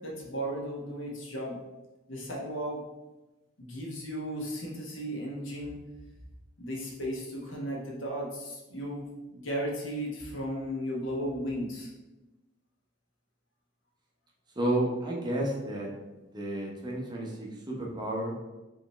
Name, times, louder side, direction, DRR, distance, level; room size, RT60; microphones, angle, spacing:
voice 1, 0.0-1.6 2.1-2.8 3.6-5.8 6.6-11.9, equal, 80° left, -2 dB, 1.2 m, -35 dB
voice 2, 14.6-15.9 16.3-18.3, right 1 dB, 20° right, -2 dB, 0.8 m, -31 dB
5.2 x 3.1 x 3.3 m, 1.1 s
head